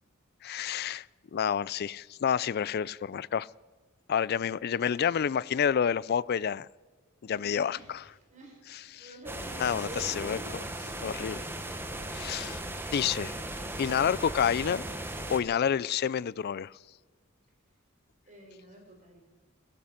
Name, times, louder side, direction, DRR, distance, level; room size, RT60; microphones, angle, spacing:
voice 1, 0.4-1.1 1.3-3.5 4.1-6.7 7.2-8.0 8.9-9.1 9.6-10.4 11.0-11.4 12.1-12.6 12.9-13.4 13.8-14.8 15.3-16.7, left 8 dB, 50° left, 0.4 m, -29 dB
voice 2, 7.2-10.4 18.3-19.3, right 1 dB, 35° right, 5.1 m, -48 dB
sound 1, 9.3-15.4, right 1 dB, 10° right, 1.2 m, -37 dB
17.5 x 12.5 x 5.7 m
head